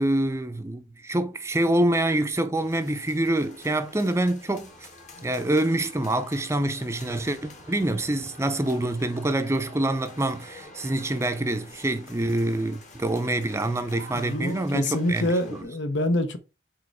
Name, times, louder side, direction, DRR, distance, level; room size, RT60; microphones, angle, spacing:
voice 1, 0.0-4.7 5.2-15.3, right 1 dB, 15° right, 0.5 m, -26 dB
sound 1, 2.5-15.6, left 2 dB, 40° left, 1.4 m, -47 dB
sound 2, 4.0-4.1 4.9-5.0 5.9-6.0 7.0-8.4 9.0-9.1, left 1 dB, 85° left, 2.7 m, -52 dB
voice 2, 14.1-16.4, left 1 dB, 65° left, 0.9 m, -26 dB
4.9 x 4.4 x 4.7 m
head